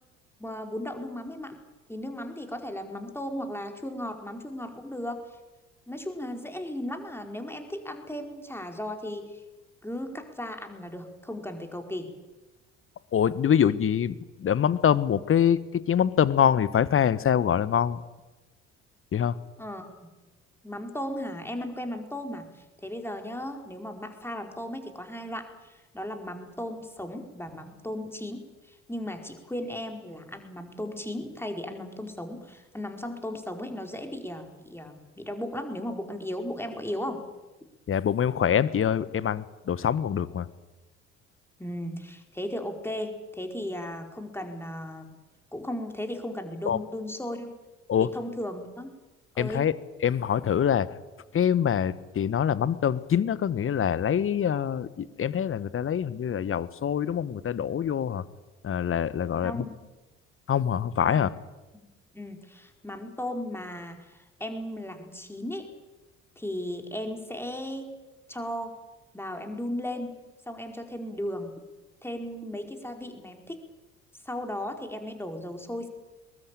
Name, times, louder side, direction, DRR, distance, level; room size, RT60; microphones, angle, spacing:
voice 1, 0.4-1.6 1.9-5.3 5.9-9.4 9.8-12.1 19.6-20.1 20.6-37.2 41.6-45.2 45.5-47.6 48.0-48.9 49.3-49.7 59.4-59.7 61.1-61.2 62.1-65.7 66.4-67.9 68.3-68.8 69.1-70.2 70.5-71.6 72.0-73.6 74.2-75.9, left 1 dB, 5° left, 5 dB, 4.6 m, -36 dB
voice 2, 13.1-18.0 19.1-19.3 37.9-40.5 46.7-46.8 47.9-48.1 49.4-49.7 50.0-50.9 51.3-58.2 58.6-59.6 60.5-61.3, left 8 dB, 35° left, 18 dB, 1.3 m, -25 dB
22.5 x 20.5 x 9.1 m, 1.1 s
figure-of-eight pair, 55°, 37 cm